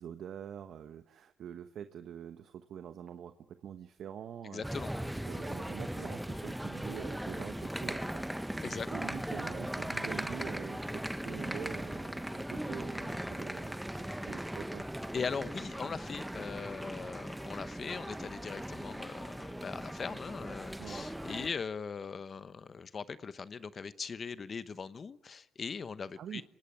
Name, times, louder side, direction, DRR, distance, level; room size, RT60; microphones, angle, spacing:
voice 1, 0.0-4.7 5.3-8.2 8.5-14.8 20.8-21.0 26.2-26.4, right 9 dB, 70° right, 10 dB, 1.1 m, -45 dB
voice 2, 4.4-4.9 8.6-8.9 15.1-26.4, left 5 dB, 40° left, 14 dB, 1.0 m, -40 dB
sound 1, 4.6-21.5, right 1 dB, 5° right, 0.9 m, -39 dB
24.5 x 19.0 x 9.9 m, 0.81 s
cardioid pair, 90°, 0 cm